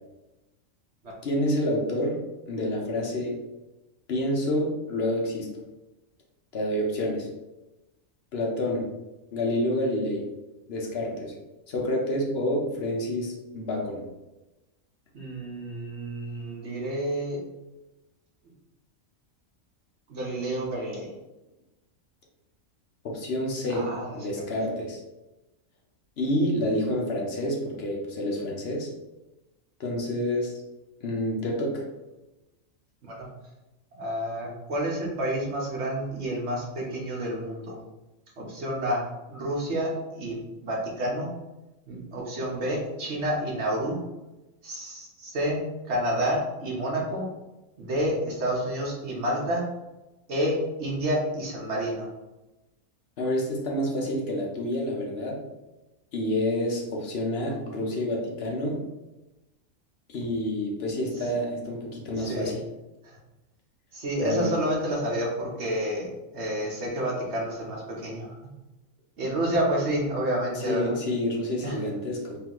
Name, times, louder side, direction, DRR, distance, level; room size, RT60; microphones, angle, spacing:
voice 1, 1.2-2.2 2.5-3.4 4.1-5.5 6.5-7.3 8.3-8.9 9.3-10.2 10.7-11.3 11.7-14.1 23.0-25.0 26.2-28.9 29.8-30.5 31.0-31.8 53.2-55.4 56.1-58.8 60.1-62.6 64.2-64.5 70.6-72.4, left 1 dB, 50° left, -1 dB, 1.1 m, -28 dB
voice 2, 15.1-17.4 20.1-21.1 23.7-24.2 33.0-33.3 33.9-37.8 38.4-41.3 41.9-44.0 44.6-47.3 47.8-49.7 50.3-52.1 61.2-61.3 62.2-62.5 63.0-63.2 63.9-68.3 69.2-70.9 71.6-71.8, right 1 dB, 55° right, -3 dB, 1.3 m, -29 dB
4.0 x 3.3 x 3.0 m, 1.0 s
omnidirectional pair, 1.4 m